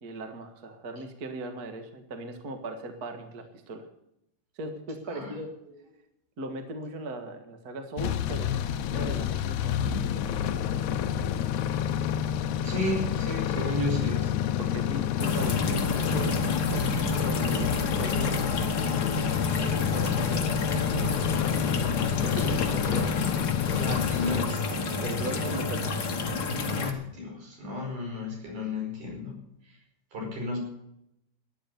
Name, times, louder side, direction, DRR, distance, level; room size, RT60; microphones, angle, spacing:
voice 1, 0.0-3.8 4.5-5.5 6.4-10.7 11.2-11.5 14.6-16.4 16.7-18.9 19.5-21.9 22.2-23.1 23.7-23.8 25.0-26.1, right 2 dB, 40° right, 6 dB, 1.6 m, -39 dB
sound 1, 8.0-24.5, left 10 dB, 75° left, 2.0 m, -29 dB
voice 2, 12.6-14.3 22.6-22.8 23.8-25.0 26.6-29.4 29.6-29.7 30.1-30.6, left 2 dB, 70° right, 0 dB, 6.6 m, -33 dB
sound 2, 15.2-26.9, left 3 dB, 45° left, 1.3 m, -30 dB
13.5 x 10.0 x 6.9 m, 0.81 s
omnidirectional pair, 3.7 m